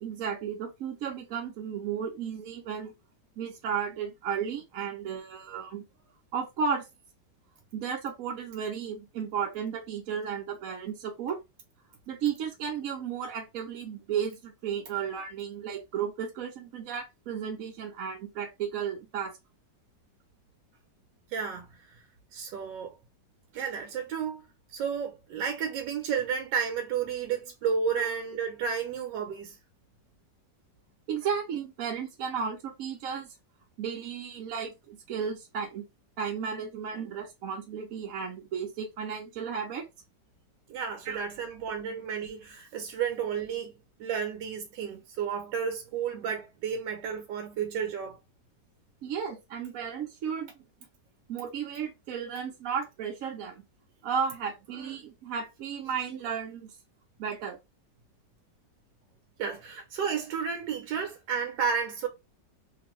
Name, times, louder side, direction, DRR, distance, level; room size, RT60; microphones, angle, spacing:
voice 1, 0.0-2.9 3.4-5.8 6.3-6.9 7.7-11.4 12.1-19.3 28.0-28.1 31.1-33.3 33.8-35.9 36.2-39.9 41.1-41.2 49.0-50.5 51.3-53.6 54.0-56.8 57.2-57.6, right 7 dB, 65° right, 0.9 m, -34 dB
voice 2, 21.3-22.0 22.3-22.9 23.5-24.4 24.7-29.6 40.7-43.7 44.0-48.2 59.4-62.1, right 7 dB, 90° right, 1.3 m, -32 dB
2.9 x 2.6 x 3.0 m
omnidirectional pair, 1.9 m